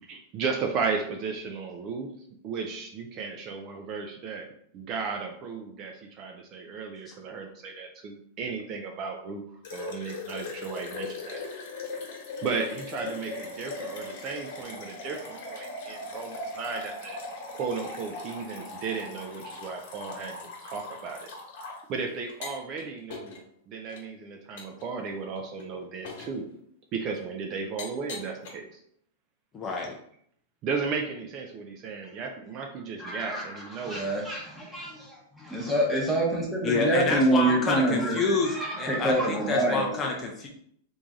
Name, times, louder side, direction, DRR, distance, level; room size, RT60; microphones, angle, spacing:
voice 1, 0.1-2.1 2.4-4.5 4.7-9.4 9.7-11.4 12.4-17.2 17.5-21.3 21.9-23.4 23.7-26.4 26.9-28.8 30.6-34.0, right 5 dB, 35° right, 3 dB, 0.4 m, -34 dB
sound 1, 9.6-21.8 22.3-22.8 23.1-23.4 23.9-24.0 24.6-24.8 25.4-25.6 26.0-26.4 27.1-27.2 27.8-28.5, left 3 dB, 60° left, 1.2 m, -39 dB
voice 2, 29.5-30.0 36.6-40.5, left 3 dB, 20° left, 0 dB, 0.4 m, -28 dB
voice 3, 33.0-33.5 33.8-39.9, right 1 dB, ahead, -5 dB, 1.0 m, -26 dB
3.2 x 2.6 x 3.5 m, 0.68 s
supercardioid pair, 150°, 0 cm